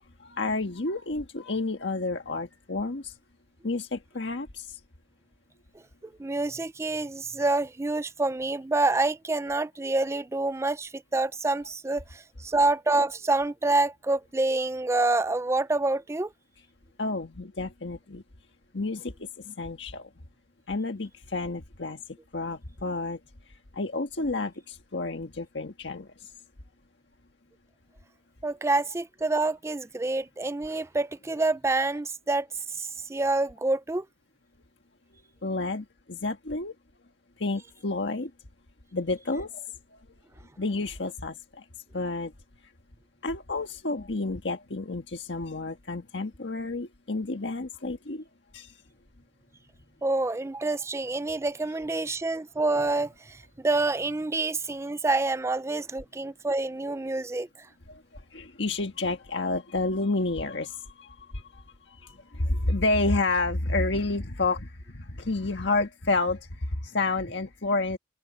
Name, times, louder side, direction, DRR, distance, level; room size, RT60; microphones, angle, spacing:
voice 1, 0.2-3.2 3.6-4.8 17.0-18.2 18.7-20.1 20.7-22.0 22.3-23.2 23.7-26.3 35.4-36.7 37.4-38.3 38.9-40.0 40.6-41.6 41.9-42.3 43.2-48.2 48.5-48.8 52.0-52.2 57.9-68.0, left 2 dB, 90° left, 1.5 m, -30 dB
voice 2, 6.0-16.3 28.4-32.5 32.7-34.1 50.0-57.7, right 2 dB, 15° right, 0.4 m, -27 dB
head